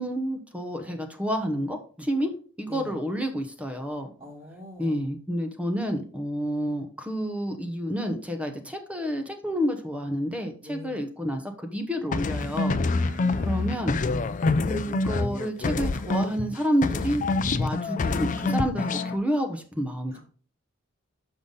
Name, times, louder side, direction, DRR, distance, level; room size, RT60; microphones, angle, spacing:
voice 1, 0.0-2.3 2.6-4.1 4.8-12.8 13.4-14.0 14.7-17.2 17.6-20.2, equal, 5° right, 5 dB, 0.9 m, -29 dB
voice 2, 2.7-3.0 4.2-5.1 10.6-10.9 12.8-13.8 20.1-20.2, left 1 dB, 30° right, -5 dB, 1.8 m, -44 dB
sound 1, 12.1-16.5 16.8-19.2, left 3 dB, 40° left, 0.5 m, -26 dB
6.8 x 5.4 x 3.9 m, 0.41 s
head